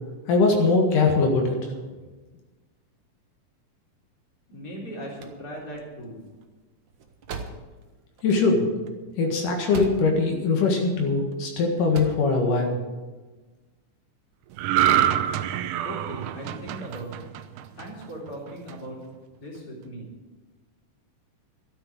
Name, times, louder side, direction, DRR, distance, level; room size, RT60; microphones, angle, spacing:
voice 1, 0.3-1.6 8.2-8.7 9.2-12.8, left 3 dB, 85° left, 1 dB, 3.3 m, -21 dB
voice 2, 4.5-6.2 15.8-17.3 17.7-19.0 19.4-20.1, right 1 dB, 30° left, -3 dB, 4.1 m, -38 dB
sound 1, 5.0-10.4 10.6-11.4 11.7-12.3, right 4 dB, 60° right, 1.2 m, -41 dB
sound 2, 14.6-18.1 18.5-18.7, right 11 dB, 85° right, 2.2 m, -25 dB
13.0 x 9.2 x 8.5 m, 1.3 s
omnidirectional pair, 3.6 m